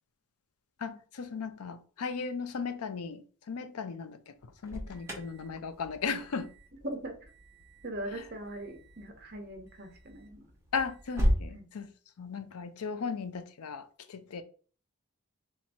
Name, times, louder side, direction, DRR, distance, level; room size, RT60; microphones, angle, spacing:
voice 1, 0.8-6.5 8.1-8.2 10.7-11.9 12.2-14.4, left 5 dB, 85° left, 0.5 m, -37 dB
Alarm, 4.4-11.5, equal, 10° right, 0.8 m, -36 dB
voice 2, 6.8-7.3 7.8-10.5 11.5-11.7, right 1 dB, 45° right, 0.9 m, -40 dB
3.4 x 2.9 x 4.2 m
head